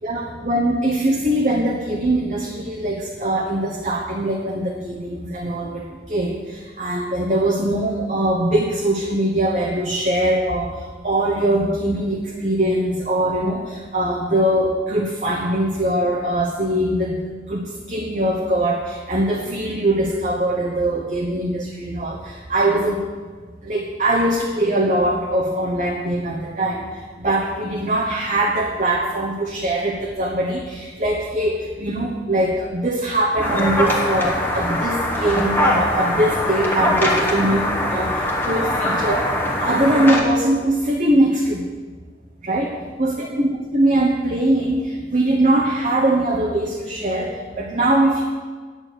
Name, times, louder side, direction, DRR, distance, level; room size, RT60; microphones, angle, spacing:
voice 1, 0.0-5.8 6.1-10.7 11.0-17.2 17.5-17.6 17.9-23.0 23.6-26.9 27.2-38.1 38.4-39.3 39.6-41.6 42.4-42.7 43.0-48.2, right 1 dB, 40° right, -2 dB, 1.1 m, -21 dB
sound 1, 33.4-40.2, left 1 dB, 10° left, 1.5 m, -22 dB
9.7 x 9.0 x 6.6 m, 1.5 s
head